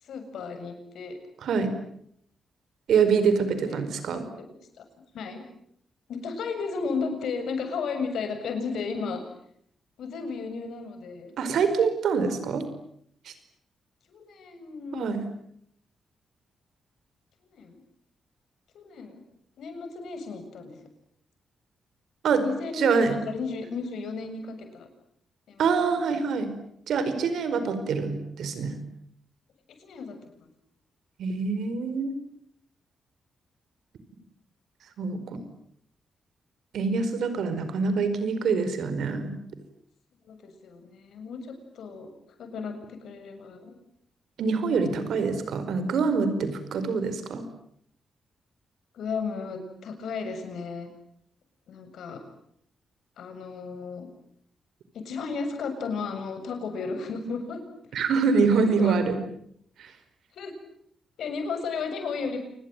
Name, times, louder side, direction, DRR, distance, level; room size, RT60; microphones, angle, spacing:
voice 1, 0.0-1.2 3.7-3.9 4.1-4.3 4.8-4.9 5.1-5.4 6.1-9.2 10.0-11.3 14.1-15.1 17.5-17.8 18.7-19.2 19.6-20.8 22.4-24.9 25.5-25.7 29.8-30.5 40.3-42.1 42.4-43.7 48.9-50.9 51.7-52.2 53.2-54.1 54.9-57.6 57.9-58.0 58.6-59.0 60.3-60.5 61.2-62.4, left 5 dB, 80° left, 7 dB, 7.3 m, -34 dB
voice 2, 2.9-4.2 11.4-12.6 13.2-13.3 14.9-15.2 22.2-22.4 22.8-23.1 25.6-26.5 26.9-28.8 31.2-32.1 35.0-35.4 36.7-39.3 44.4-47.4 57.9-59.2 59.8-59.9, right 5 dB, 80° right, 11 dB, 4.9 m, -25 dB
28.5 x 21.5 x 9.1 m, 0.70 s
cardioid pair, 95°, 0 cm